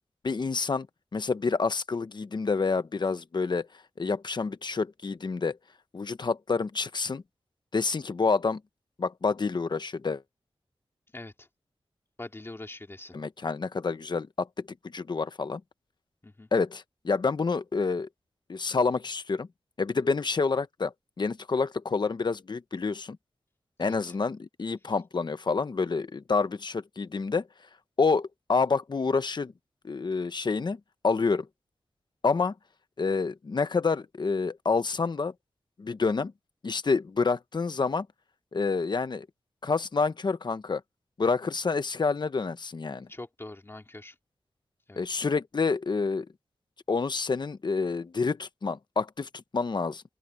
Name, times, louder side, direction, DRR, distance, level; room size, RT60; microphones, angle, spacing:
voice 1, 0.2-0.9 1.1-3.7 4.0-5.6 5.9-7.2 7.7-8.6 9.0-10.2 13.1-14.5 14.9-15.6 16.5-18.1 18.5-19.5 19.8-23.2 23.8-27.4 28.0-29.5 29.8-30.8 31.0-31.5 32.2-32.5 33.0-35.3 35.8-36.3 36.6-38.1 38.5-39.3 39.6-40.8 41.2-43.1 45.0-46.3 46.9-50.0, left 4 dB, 45° left, 1.0 m, -28 dB
voice 2, 11.1-11.5 12.2-13.2 16.2-16.5 23.8-24.1 43.1-44.1 44.9-45.0, left 2 dB, 25° left, 2.5 m, -43 dB
open air
wide cardioid pair, 105°, 10 cm